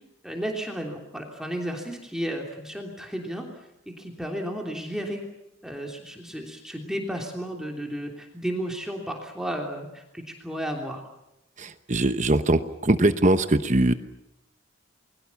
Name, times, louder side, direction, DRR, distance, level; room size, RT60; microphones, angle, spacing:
voice 1, 0.2-3.5 3.9-5.2 5.6-11.0, equal, 5° right, 1 dB, 3.2 m, -33 dB
voice 2, 11.6-13.9, right 2 dB, 35° right, 10 dB, 1.0 m, -21 dB
29.0 x 22.0 x 7.2 m, 0.86 s
head